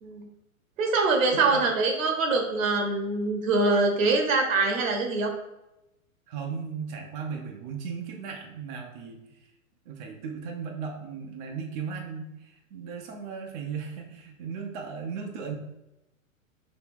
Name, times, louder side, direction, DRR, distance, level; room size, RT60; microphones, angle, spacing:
voice 1, 0.8-5.3, right 3 dB, 70° right, 3 dB, 1.0 m, -24 dB
voice 2, 6.3-9.2 9.9-15.5, right 6 dB, 35° right, 1 dB, 0.5 m, -36 dB
3.0 x 2.7 x 3.5 m, 0.91 s
hypercardioid pair, 125°, 42 cm